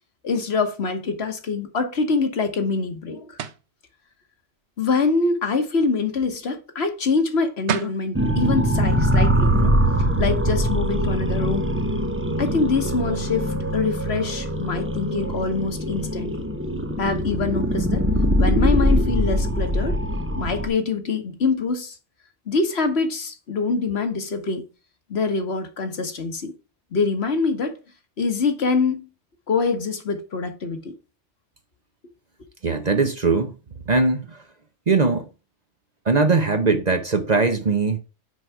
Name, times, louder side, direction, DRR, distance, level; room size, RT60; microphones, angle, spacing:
voice 1, 0.2-3.3 4.8-9.7 10.2-11.6 12.4-16.5 17.0-18.1 18.4-20.0 20.4-21.9 22.5-24.6 25.1-26.5 26.9-27.8 28.2-29.1 29.5-30.9, left 4 dB, 60° left, 1.4 m, -24 dB
sound 1, 3.4-3.7 7.3-7.4 7.7-8.0, right 9 dB, 70° right, 1.0 m, -27 dB
sound 2, 8.1-20.7, equal, 15° right, 0.5 m, -22 dB
voice 2, 32.6-33.5 33.9-34.4 34.9-35.3 36.1-38.0, right 3 dB, 40° right, 0.8 m, -20 dB
6.4 x 4.7 x 4.6 m
omnidirectional pair, 1.2 m